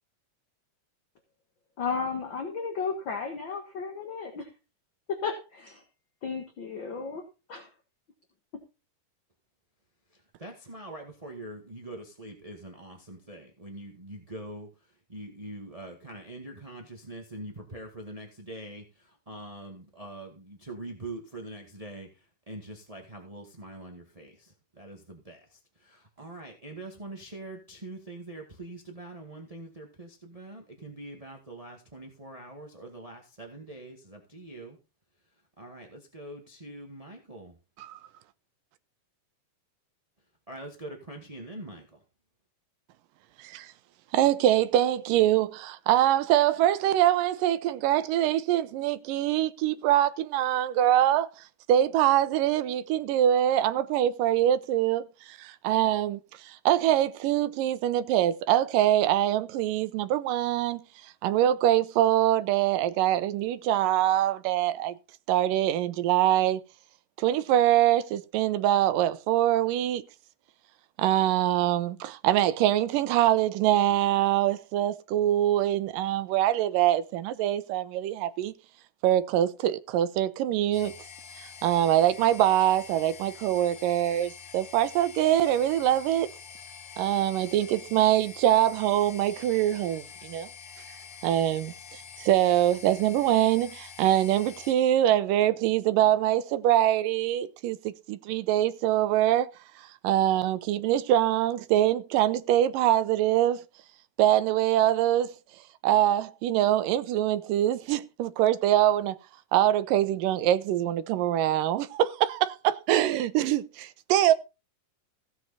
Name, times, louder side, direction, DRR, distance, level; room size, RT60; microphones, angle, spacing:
voice 1, 1.8-4.5 5.1-5.8 6.2-7.2 7.5-7.7 8.5-8.6, left 5 dB, 45° left, 1.9 m, -33 dB
voice 2, 10.1-34.8 35.6-37.5 40.5-42.0, right 1 dB, 20° right, 1.0 m, -43 dB
voice 3, 44.1-51.3 51.7-56.2 56.5-60.8 61.2-64.9 65.3-66.6 67.2-70.0 71.0-78.5 79.0-81.0 81.4-86.3 87.0-90.5 91.2-99.5 100.0-103.6 104.2-105.3 105.8-109.2 109.5-114.3, right 12 dB, 90° right, 2.4 m, -24 dB
sound 1, 80.7-94.7, left 7 dB, 70° left, 3.1 m, -46 dB
16.0 x 7.8 x 4.2 m
omnidirectional pair, 3.8 m